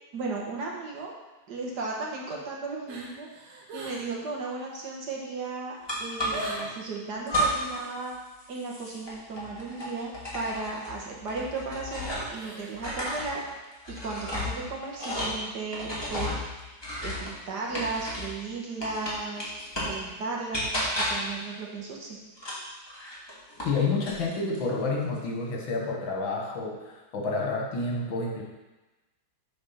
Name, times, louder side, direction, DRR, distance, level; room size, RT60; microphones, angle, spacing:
voice 1, 0.1-1.1 1.5-3.3 3.7-5.7 6.0-8.1 8.5-13.4 13.9-16.4 17.0-19.6 19.8-22.2, right 3 dB, 60° right, -2 dB, 1.7 m, -35 dB
sound 1, 2.9-4.2 4.4-4.8 5.4-5.5 5.7-6.8 12.2-12.8 13.1-13.2, right 1 dB, 90° right, 2.0 m, -40 dB
sound 2, 5.9-6.7 7.3-7.9 8.1-12.4 12.7-18.4 18.8-20.0 20.5-21.4 22.4-23.8 24.0-24.6, equal, 15° left, 1.6 m, -33 dB
voice 2, 23.6-28.4, left 3 dB, 75° left, -1 dB, 2.1 m, -29 dB
7.6 x 4.4 x 5.7 m, 1.1 s
omnidirectional pair, 2.2 m